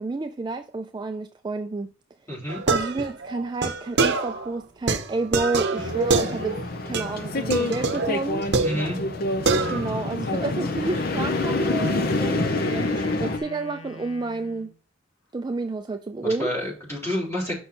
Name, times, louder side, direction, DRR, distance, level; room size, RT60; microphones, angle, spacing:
voice 1, 0.0-1.9 2.7-6.6 6.9-8.5 9.7-14.7 15.3-16.5, right 3 dB, 20° right, 0.3 m, -30 dB
voice 2, 2.3-2.6 8.6-9.0 16.4-17.5, equal, 15° left, 3.6 m, -28 dB
sound 1, 2.5-4.5 4.9-6.7 6.9-7.2 7.5-9.2 9.5-10.0, right 4 dB, 55° right, 0.8 m, -26 dB
sound 2, 5.8-13.4, left 2 dB, 50° left, 0.7 m, -27 dB
Wind instrument woodwind instrument, 10.8-14.8, left 2 dB, 75° left, 1.0 m, -41 dB
6.2 x 5.7 x 4.2 m
head